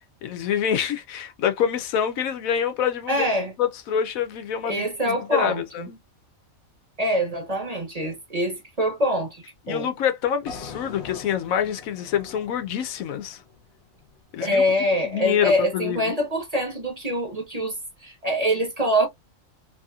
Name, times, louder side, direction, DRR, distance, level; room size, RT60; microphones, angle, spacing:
voice 1, 0.2-3.3 3.6-6.0 9.7-13.4 14.3-14.6 15.1-16.1, left 8 dB, 85° left, 1.1 m, -26 dB
voice 2, 3.1-3.5 4.6-5.9 7.0-9.9 14.4-17.8 18.0-19.1, equal, 30° right, 0.9 m, -24 dB
sound 1, 10.5-14.6, left 5 dB, 55° left, 1.1 m, -43 dB
3.0 x 2.8 x 2.3 m
omnidirectional pair, 1.4 m